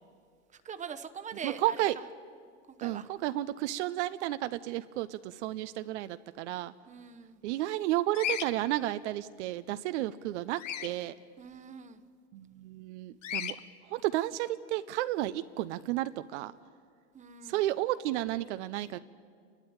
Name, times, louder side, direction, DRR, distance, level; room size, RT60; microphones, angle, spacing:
voice 1, 0.5-1.8 2.7-3.1 6.9-7.4 11.4-12.0 13.6-13.7 17.1-17.7, right 7 dB, 20° right, 10 dB, 1.0 m, -43 dB
voice 2, 1.4-1.9 2.8-6.7 7.4-11.1 12.3-13.6 13.9-16.5 17.5-19.0, right 15 dB, 65° right, 12 dB, 0.7 m, -32 dB
Bird vocalization bird call bird song, 8.1-8.5 10.6-10.9 13.2-13.5, left 10 dB, 85° left, 1.0 m, -33 dB
29.0 x 12.5 x 8.7 m, 2.1 s
hypercardioid pair, 105°, 37 cm